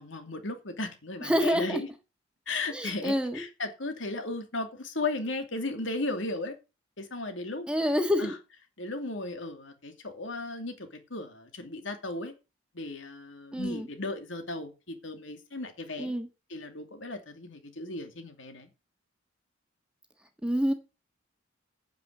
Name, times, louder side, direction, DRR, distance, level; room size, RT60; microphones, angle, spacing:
voice 1, 0.0-1.9 2.5-6.6 7.0-7.7 8.2-8.3 8.8-12.3 12.7-16.1 16.5-18.7, left 2 dB, 75° left, 2.6 m, -36 dB
voice 2, 1.2-1.8 2.7-3.4 7.7-8.3 13.5-13.9 16.0-16.3 20.4-20.7, equal, 5° right, 1.5 m, -27 dB
9.5 x 7.8 x 6.7 m
head